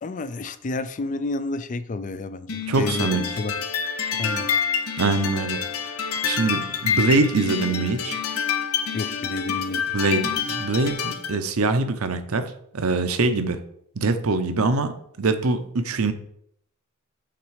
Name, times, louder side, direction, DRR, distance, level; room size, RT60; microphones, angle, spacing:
voice 1, 0.0-3.5 4.2-4.5 8.9-9.8, left 2 dB, 35° left, 13 dB, 0.4 m, -30 dB
sound 1, 2.5-11.4, left 6 dB, 85° left, 0.8 m, -27 dB
voice 2, 2.7-3.4 5.0-5.6 6.2-8.2 9.9-12.4 12.7-13.6 14.0-14.9 15.2-16.1, right 3 dB, 80° right, 9 dB, 0.7 m, -23 dB
5.9 x 4.1 x 4.7 m, 0.69 s
head